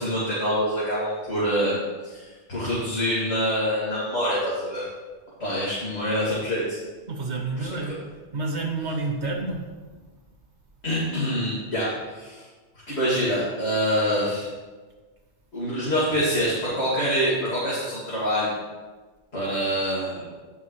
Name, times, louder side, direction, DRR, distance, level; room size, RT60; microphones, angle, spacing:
voice 1, 0.0-1.8 2.0-4.8 5.4-6.8 7.6-7.7 10.8-12.4 12.9-14.5 15.5-18.6 19.3-20.2, equal, 65° left, -10 dB, 2.8 m, -25 dB
voice 2, 7.1-7.9 8.3-9.6, right 3 dB, 70° right, 1 dB, 1.6 m, -29 dB
16.0 x 5.5 x 3.2 m, 1.3 s
omnidirectional pair, 1.2 m